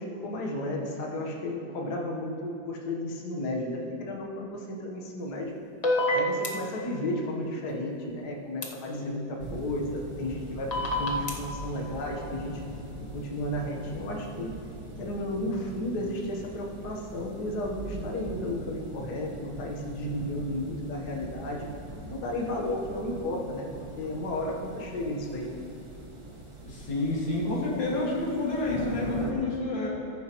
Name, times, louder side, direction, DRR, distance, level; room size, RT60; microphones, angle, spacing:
voice 1, 0.0-5.5 6.1-12.6 13.1-14.5 15.0-21.7 22.0-25.5, left 1 dB, 60° left, 0 dB, 1.7 m, -33 dB
sound 1, 5.8-6.5 8.6-8.7 10.7-11.3, left 1 dB, 35° left, 0.6 m, -25 dB
sound 2, 9.4-29.3, right 2 dB, 25° right, 0.7 m, -41 dB
voice 2, 26.6-29.9, left 2 dB, 75° left, -4 dB, 2.8 m, -29 dB
14.5 x 11.0 x 3.0 m, 2.8 s
omnidirectional pair, 2.1 m